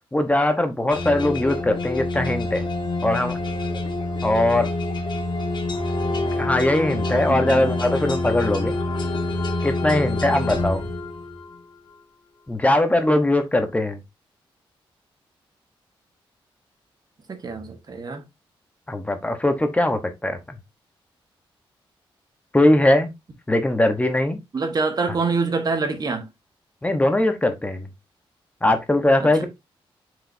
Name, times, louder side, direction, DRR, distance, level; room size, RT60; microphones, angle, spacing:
voice 1, 0.1-2.7 3.0-3.4 4.2-4.7 6.4-8.8 9.6-10.9 12.5-14.0 18.9-20.6 22.5-23.1 23.5-24.4 26.8-27.9 28.6-29.5, left 1 dB, 15° left, 1.1 m, -20 dB
sound 1, 0.9-11.6, left 2 dB, 55° left, 1.7 m, -26 dB
voice 2, 7.3-7.8 17.3-18.2 24.5-26.3 29.4-29.5, right 4 dB, 45° right, 1.4 m, -26 dB
7.4 x 5.0 x 2.7 m
cardioid pair, 85°, 9 cm